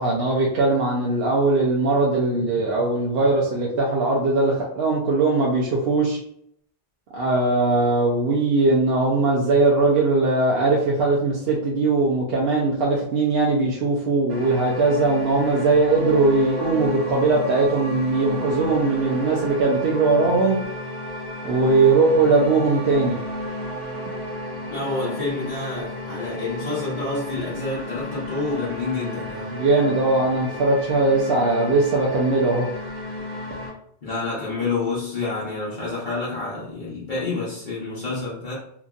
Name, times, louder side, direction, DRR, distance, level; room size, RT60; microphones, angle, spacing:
voice 1, 0.0-6.2 7.1-20.6 21.4-23.2 29.5-32.7, right 3 dB, 70° right, -3 dB, 0.8 m, -20 dB
sound 1, 14.3-33.7, left 1 dB, 45° right, 1.0 m, -33 dB
voice 2, 24.7-29.6 34.0-38.5, left 3 dB, 50° left, -9 dB, 1.0 m, -28 dB
2.9 x 2.5 x 2.3 m, 0.69 s
omnidirectional pair, 1.0 m